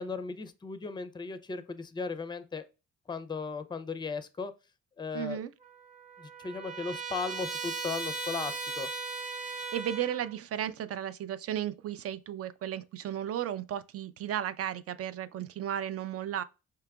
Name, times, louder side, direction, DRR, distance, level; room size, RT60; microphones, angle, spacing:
voice 1, 0.0-2.6 3.1-4.5 5.0-5.4 6.2-8.9, left 4 dB, 15° left, 0.4 m, -36 dB
voice 2, 5.1-5.5 9.5-16.4, right 10 dB, 50° right, 0.4 m, -34 dB
Trumpet, 5.6-10.3, right 4 dB, 25° right, 0.9 m, -38 dB
4.7 x 2.9 x 2.3 m
cardioid pair, 90°, 30 cm